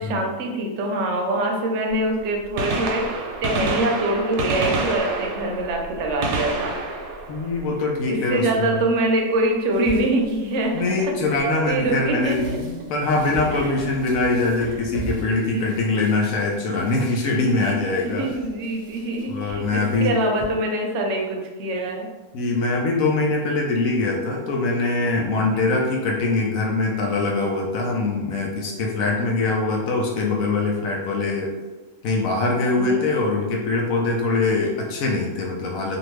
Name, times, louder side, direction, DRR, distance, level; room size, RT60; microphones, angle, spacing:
voice 1, 0.0-6.7 8.1-10.8 11.4-12.6 13.6-13.7 15.4-15.8 17.3-17.8 18.0-22.1 25.5-25.8 32.8-33.0, right 1 dB, 65° right, 1 dB, 0.8 m, -24 dB
Gunshot gunfire, 1.9-2.0 2.4-8.3 10.2-10.4 11.4-11.5 13.1-13.2 14.6-14.7 14.8-14.9, right 3 dB, 85° right, 1.0 m, -28 dB
voice 2, 7.3-8.8 10.7-18.3 19.3-20.1 22.3-31.5 32.0-36.0, left 3 dB, 75° left, 0 dB, 1.0 m, -23 dB
sound 1, 9.7-20.4, right 2 dB, 10° right, 0.6 m, -41 dB
2.7 x 2.5 x 3.0 m, 1.2 s
omnidirectional pair, 1.5 m